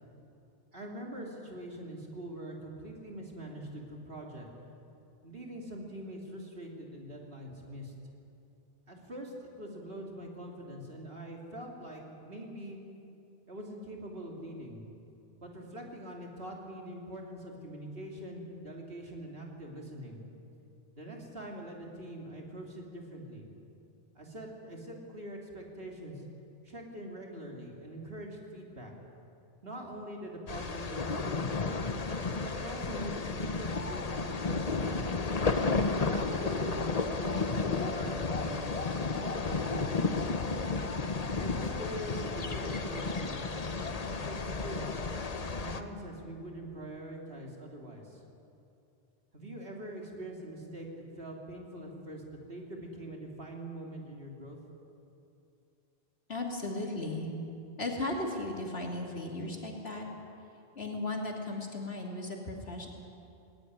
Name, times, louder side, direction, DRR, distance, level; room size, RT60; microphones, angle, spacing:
voice 1, 0.7-4.5 5.2-7.9 8.9-12.8 13.5-14.8 15.4-20.2 20.9-23.5 24.1-26.2 26.6-28.9 29.6-31.6 32.4-35.1 35.9-38.8 39.0-40.1 41.4-43.4 43.9-45.0 45.5-48.2 49.3-50.9 51.2-54.6, right 1 dB, 60° right, 0 dB, 3.5 m, -43 dB
sound 1, 30.5-45.8, left 4 dB, 35° left, 1.0 m, -32 dB
voice 2, 56.3-57.3 57.8-60.1 60.7-62.9, left 2 dB, 65° left, 0 dB, 3.1 m, -36 dB
19.0 x 19.0 x 9.8 m, 2.7 s
omnidirectional pair, 1.1 m